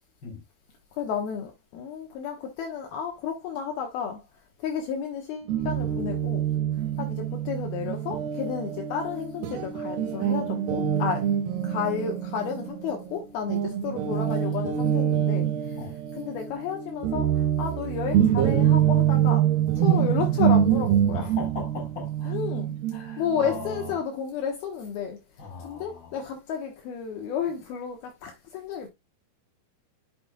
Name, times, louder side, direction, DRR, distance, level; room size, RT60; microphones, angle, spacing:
voice 1, 0.9-4.2 4.6-6.5 7.0-11.4 11.6-15.8 16.2-19.5 19.8-21.3 22.3-22.7 23.2-25.2 25.6-28.9, left 7 dB, 75° left, 2.9 m, -32 dB
Guitar, 5.5-13.2 13.5-23.9, right 10 dB, 85° right, 3.0 m, -25 dB
voice 2, 21.1-22.4 22.9-23.9 25.4-26.1, left 4 dB, 30° left, 3.8 m, -38 dB
9.2 x 6.8 x 2.3 m
omnidirectional pair, 4.7 m